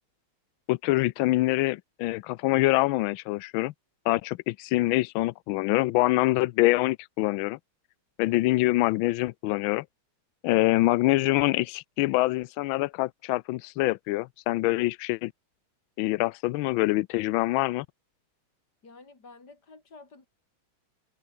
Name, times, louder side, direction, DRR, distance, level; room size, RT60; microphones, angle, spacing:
voice 1, 0.7-3.7 4.1-7.6 8.2-9.8 10.4-15.3 16.0-17.9, left 19 dB, 75° left, 1.3 m, -25 dB
voice 2, 18.8-20.3, left 3 dB, 50° left, 4.8 m, -50 dB
omnidirectional pair, 2.3 m